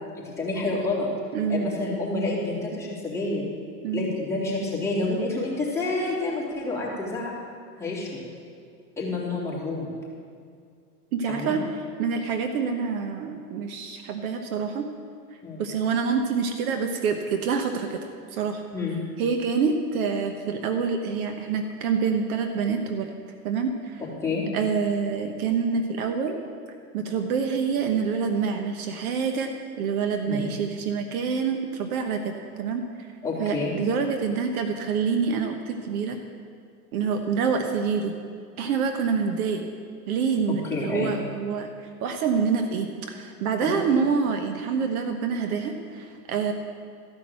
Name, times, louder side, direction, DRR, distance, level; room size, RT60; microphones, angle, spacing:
voice 1, 0.2-1.1 1.5-3.4 3.9-7.3 7.8-8.2 9.0-9.9 11.3-11.5 15.4-15.6 18.7-19.0 24.2-24.5 30.2-30.5 33.2-33.7 40.7-41.2, left 2 dB, 5° left, -6 dB, 3.2 m, -28 dB
voice 2, 1.3-1.7 3.8-4.1 11.1-11.6 12.0-14.9 15.6-18.0 18.3-18.6 19.2-23.1 23.4-24.0 24.5-26.4 26.9-32.8 33.4-36.2 36.9-38.1 38.6-39.6 40.1-41.7 42.0-46.5, right 5 dB, 60° right, 5 dB, 1.2 m, -26 dB
14.0 x 6.0 x 7.6 m, 2.2 s
hypercardioid pair, 110°, 49 cm